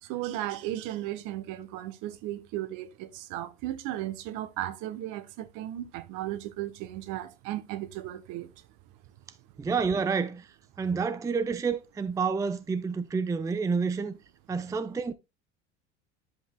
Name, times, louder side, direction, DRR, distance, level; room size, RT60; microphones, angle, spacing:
voice 1, 0.0-8.5 14.5-14.7, right 14 dB, 55° right, 1.0 m, -35 dB
voice 2, 9.6-10.5 10.8-14.2 14.5-15.1, right 5 dB, 10° right, 0.5 m, -29 dB
10.5 x 5.4 x 2.2 m
hypercardioid pair, 75°, 36 cm